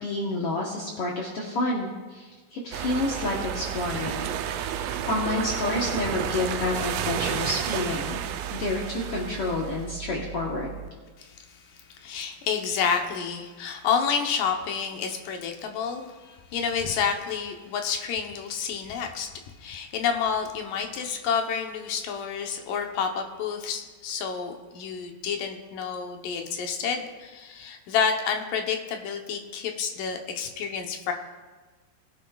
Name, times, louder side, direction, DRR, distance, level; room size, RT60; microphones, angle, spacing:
voice 1, 0.0-4.7 5.0-8.2 8.5-10.8, left 2 dB, 85° left, -3 dB, 1.2 m, -29 dB
sound 1, 2.7-10.9, right 9 dB, 80° right, 2.2 m, -31 dB
voice 2, 11.2-19.3 19.6-31.1, left 6 dB, 70° left, 3 dB, 2.3 m, -29 dB
20.0 x 10.5 x 2.3 m, 1.3 s
omnidirectional pair, 4.4 m